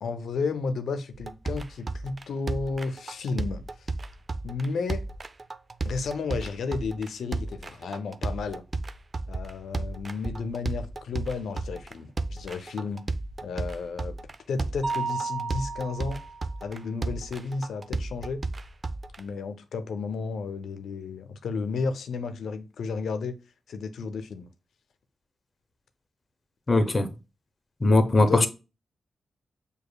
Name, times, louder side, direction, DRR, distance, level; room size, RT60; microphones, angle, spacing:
voice 1, 0.0-3.6 4.4-5.0 5.8-8.6 9.3-13.0 13.4-14.2 14.5-16.2 16.6-18.4 19.2-23.4 23.7-24.5 28.2-28.5, left 4 dB, 80° left, 0.5 m, -32 dB
sound 1, 1.1-19.2, right 3 dB, 45° right, 0.4 m, -33 dB
Mallet percussion, 14.8-16.6, right 4 dB, 20° right, 0.9 m, -33 dB
voice 2, 26.7-27.1 27.8-28.5, left 2 dB, 35° left, 0.7 m, -20 dB
6.4 x 2.7 x 2.2 m
cardioid pair, 55°, 0 cm